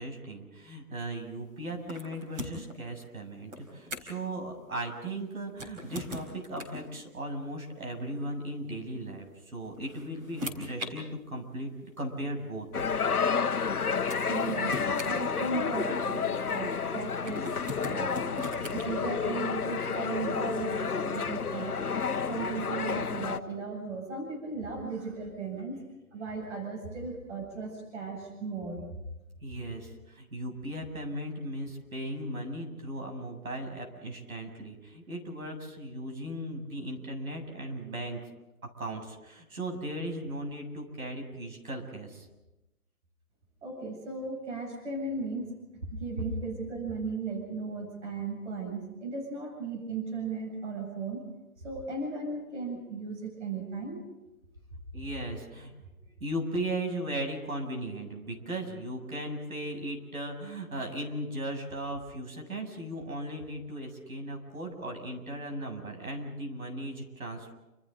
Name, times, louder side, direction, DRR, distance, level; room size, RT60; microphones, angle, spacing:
voice 1, 0.0-11.7 12.0-12.8 29.4-38.2 38.8-42.3 54.9-55.9 56.2-67.5, right 1 dB, 70° right, 3 dB, 7.6 m, -37 dB
sound 1, 1.9-2.8 3.5-4.3 5.5-6.9 8.2-8.3 9.5-10.9 11.9-12.0 13.6-13.7 14.1-15.9 17.2-18.8, left 1 dB, 15° right, 4.4 m, -40 dB
sound 2, 12.7-23.4, left 6 dB, 80° left, 1.2 m, -30 dB
voice 2, 14.2-14.8 15.0-17.5 17.8-18.3 18.7-21.8 22.3-25.8 26.1-28.8 43.6-45.5 45.9-51.2 51.6-54.1, right 4 dB, 50° right, 1 dB, 7.8 m, -36 dB
30.0 x 28.0 x 4.0 m, 0.99 s
figure-of-eight pair, 145°, 44 cm